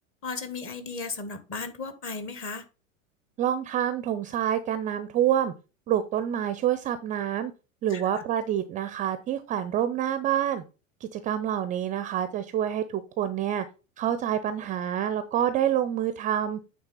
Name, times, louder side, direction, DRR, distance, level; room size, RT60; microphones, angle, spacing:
voice 1, 0.2-2.6 7.9-8.0, left 4 dB, 30° left, 9 dB, 1.5 m, -35 dB
voice 2, 3.4-5.5 5.9-7.5 7.8-10.6 11.0-13.6 14.0-16.6, right 10 dB, 20° right, 12 dB, 0.4 m, -27 dB
8.7 x 3.6 x 5.6 m, 0.32 s
figure-of-eight pair, 85°, 40 cm